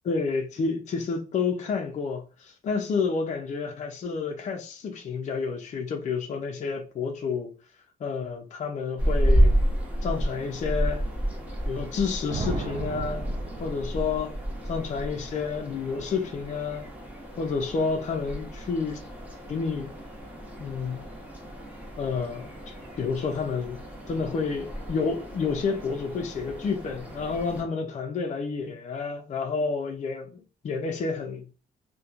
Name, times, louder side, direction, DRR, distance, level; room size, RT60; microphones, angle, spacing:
voice 1, 0.0-7.5 8.0-9.6 10.0-11.0 11.7-13.3 13.6-14.3 14.7-16.9 17.4-19.0 19.5-19.9 20.6-21.1 22.0-23.8 24.1-31.4, left 5 dB, 45° left, 0.4 m, -30 dB
sound 1, 9.0-27.6, equal, 10° right, 0.7 m, -31 dB
sound 2, 12.3-14.3, right 2 dB, 55° right, 0.5 m, -34 dB
2.8 x 2.2 x 2.4 m
cardioid pair, 110°, 17 cm